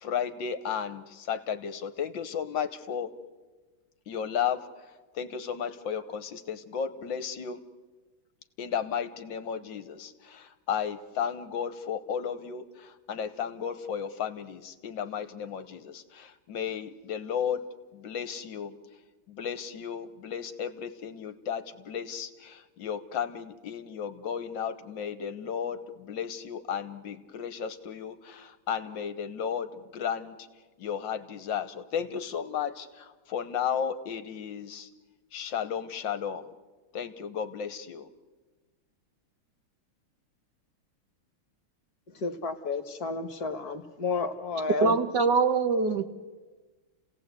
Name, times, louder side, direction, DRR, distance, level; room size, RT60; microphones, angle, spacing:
voice 1, 0.0-3.1 4.1-4.6 5.1-7.6 8.6-17.6 17.9-18.8 19.3-30.3 30.8-34.9 35.3-36.5 36.9-38.1, left 8 dB, 65° left, 11 dB, 1.7 m, -34 dB
voice 2, 42.1-44.9, left 4 dB, 50° left, 9 dB, 1.7 m, -31 dB
voice 3, 44.8-46.1, right 4 dB, 60° right, 9 dB, 1.6 m, -23 dB
29.5 x 17.5 x 8.2 m, 1.3 s
omnidirectional pair, 2.3 m